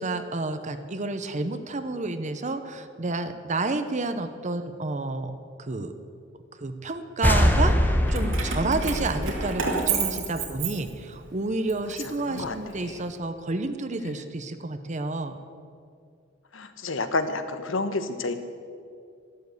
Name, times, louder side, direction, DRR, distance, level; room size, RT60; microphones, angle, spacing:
voice 1, 0.0-5.3 5.6-5.9 6.6-15.4, right 2 dB, 35° right, 9 dB, 0.8 m, -30 dB
sound 1, 7.2-10.7, equal, 10° left, 1.1 m, -24 dB
Keys jangling, 8.1-11.2 11.7-13.0, right 5 dB, 70° right, 2.5 m, -31 dB
voice 2, 12.3-13.0 14.0-14.2 16.5-18.3, left 3 dB, 80° left, 9 dB, 1.2 m, -30 dB
13.0 x 12.0 x 8.1 m, 2.3 s
head